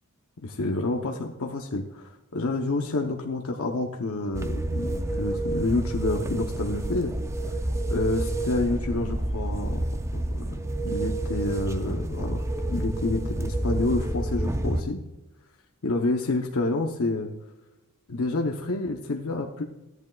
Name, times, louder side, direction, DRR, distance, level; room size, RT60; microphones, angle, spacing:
voice 1, 0.4-7.1 7.5-7.6 7.9-9.9 10.1-10.5 10.8-12.4 12.7-15.0 15.8-17.3 18.1-19.6, left 2 dB, 65° left, 2 dB, 0.8 m, -28 dB
sound 1, 4.3-14.8, right 1 dB, 15° right, 0.4 m, -29 dB
14.5 x 10.5 x 2.3 m, 1.0 s
head